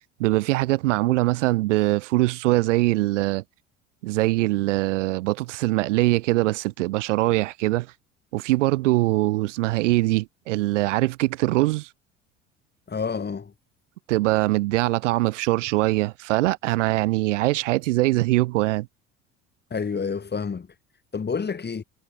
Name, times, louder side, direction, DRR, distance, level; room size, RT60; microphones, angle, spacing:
voice 1, 0.2-3.4 4.0-7.9 8.3-11.9 14.1-18.9, right 19 dB, 75° right, 0.7 m, -22 dB
voice 2, 12.9-13.5 19.7-20.7 21.1-21.8, left 5 dB, 25° left, 5.4 m, -28 dB
hypercardioid pair, 65°, 36 cm